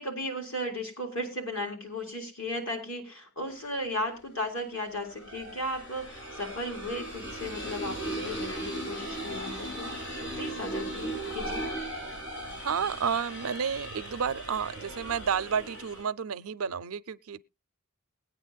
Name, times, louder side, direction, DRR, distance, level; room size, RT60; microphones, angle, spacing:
voice 1, 0.0-9.9 10.3-11.7, left 1 dB, 65° left, 4.1 m, -35 dB
sound 1, 3.6-3.7 4.7-16.0, right 1 dB, 85° left, 7.4 m, -38 dB
voice 2, 12.6-17.5, right 7 dB, 80° right, 0.5 m, -31 dB
21.0 x 9.0 x 2.3 m
head